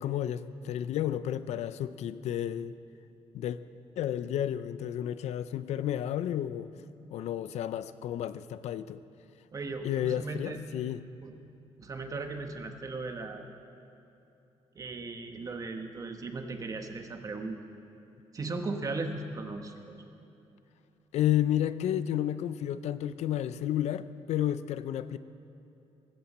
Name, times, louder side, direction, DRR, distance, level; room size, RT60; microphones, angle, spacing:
voice 1, 0.0-2.7 3.3-3.6 4.0-6.7 7.1-9.0 9.8-11.0 21.1-25.2, left 11 dB, 85° left, 14 dB, 0.5 m, -31 dB
voice 2, 9.5-10.6 11.2-11.3 11.8-13.5 14.7-17.6 18.3-20.0, right 3 dB, 30° right, 5 dB, 1.2 m, -37 dB
19.5 x 15.5 x 4.3 m, 2.8 s
cardioid pair, 145°, 11 cm